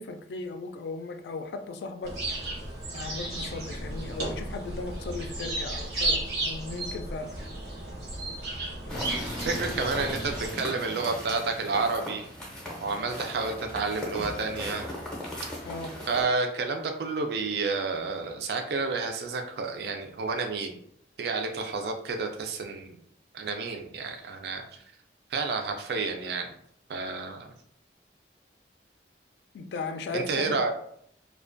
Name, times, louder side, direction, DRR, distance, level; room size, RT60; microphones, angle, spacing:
voice 1, 0.0-2.1 2.9-7.3 15.6-15.9 29.5-30.7, left 3 dB, 75° left, 6 dB, 0.3 m, -37 dB
sound 1, 2.0-10.5, right 1 dB, 85° right, 0.7 m, -34 dB
sound 2, 8.9-16.2, equal, 5° left, 0.5 m, -37 dB
voice 2, 9.4-12.3 12.8-14.8 16.1-20.8 21.2-23.0 23.3-24.6 25.3-26.5 26.9-27.5 30.1-30.7, right 4 dB, 65° right, 4 dB, 0.3 m, -30 dB
2.4 x 2.2 x 2.4 m, 0.67 s
head